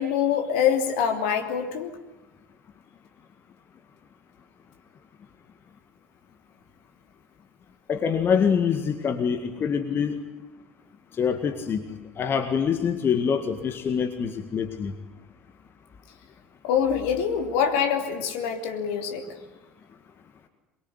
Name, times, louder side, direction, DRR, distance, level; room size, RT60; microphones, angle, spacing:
voice 1, 0.0-1.9 16.6-19.3, left 8 dB, 60° left, 5 dB, 3.1 m, -25 dB
voice 2, 7.9-10.2 11.2-11.8 12.2-14.9, left 7 dB, 30° left, 7 dB, 2.0 m, -25 dB
23.5 x 23.0 x 9.8 m, 1.0 s
figure-of-eight pair, 70°, 7 cm